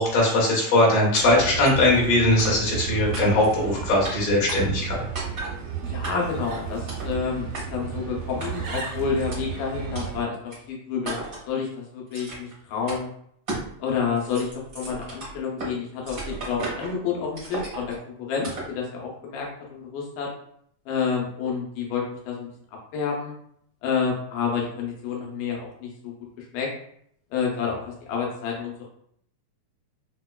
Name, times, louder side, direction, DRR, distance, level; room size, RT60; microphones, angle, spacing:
voice 1, 0.0-5.0, left 1 dB, 60° left, -4 dB, 2.0 m, -20 dB
sound 1, 1.1-1.2 1.6-1.8 2.4-2.8 3.1-3.6 4.0-4.1 4.5-4.9 5.1-5.5 6.0-6.4 6.9-7.1 7.5-7.6 8.4-8.8 9.3-9.4 9.9-10.1 10.5-10.6 11.0-11.5 12.1-12.5 12.9-13.0 13.5-13.7 14.0-15.7 16.0-16.9 17.3-18.0 18.4-18.7, right 2 dB, 55° right, 0.7 m, -35 dB
Bird, 1.2-10.2, right 7 dB, 75° right, 1.4 m, -33 dB
voice 2, 5.8-10.4 10.7-13.1 13.8-20.3 20.9-22.5 22.9-23.3 23.8-25.9 26.4-26.7 27.3-28.8, left 6 dB, 85° left, -2 dB, 2.3 m, -29 dB
5.2 x 2.2 x 2.2 m, 0.67 s
omnidirectional pair, 3.6 m